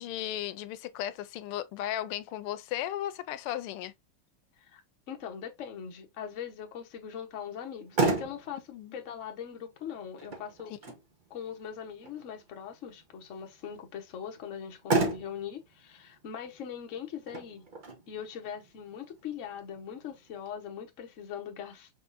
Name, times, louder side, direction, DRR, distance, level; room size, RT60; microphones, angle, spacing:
voice 1, 0.0-3.9 8.7-8.9, left 12 dB, 90° left, 1.5 m, -35 dB
voice 2, 5.1-8.6 8.9-10.7 11.3-17.7 18.1-21.9, left 8 dB, 50° left, 0.9 m, -41 dB
Motor vehicle (road), 7.6-20.5, right 3 dB, 70° right, 0.4 m, -36 dB
5.3 x 3.6 x 2.5 m
omnidirectional pair, 2.4 m